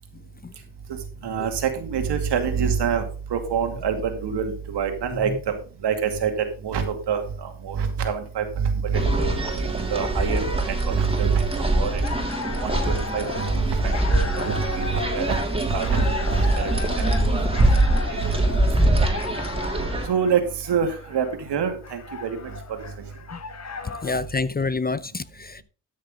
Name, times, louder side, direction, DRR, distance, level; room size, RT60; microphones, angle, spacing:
voice 1, 1.2-3.0 3.3-5.5 5.8-6.3 6.6-9.3 9.9-11.4 11.7-12.0 12.6-15.4 15.6-16.1 16.3-16.7 17.3-18.4 20.0-22.5, right 6 dB, 80° right, 2.5 m, -26 dB
sound 1, 8.9-20.1, right 1 dB, 15° right, 2.9 m, -23 dB
sound 2, 11.8-24.2, left 5 dB, 40° left, 1.6 m, -36 dB
voice 2, 24.0-25.6, left 3 dB, 25° left, 0.6 m, -27 dB
13.0 x 6.5 x 3.8 m
cardioid pair, 90°, 41 cm